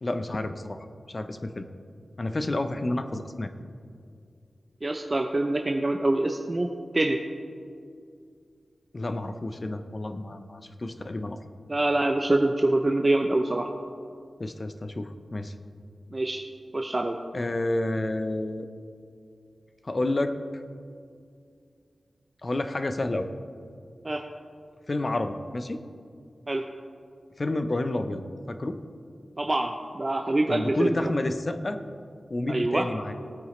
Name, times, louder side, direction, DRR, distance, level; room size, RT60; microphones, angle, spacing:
voice 1, 0.0-0.8 1.1-1.7 2.2-3.5 8.9-11.4 14.4-15.5 17.3-18.7 19.8-20.4 22.4-23.3 24.9-25.8 27.4-28.8 30.5-31.8 32.3-33.1, left 2 dB, 35° left, 9 dB, 0.7 m, -30 dB
voice 2, 4.8-6.7 6.9-7.2 11.7-13.7 16.1-16.5 16.7-17.2 24.0-24.2 26.5-26.6 29.4-31.0 32.5-32.9, right 2 dB, 30° right, 4 dB, 0.5 m, -25 dB
18.0 x 8.9 x 3.2 m, 2.3 s
wide cardioid pair, 100°, 0 cm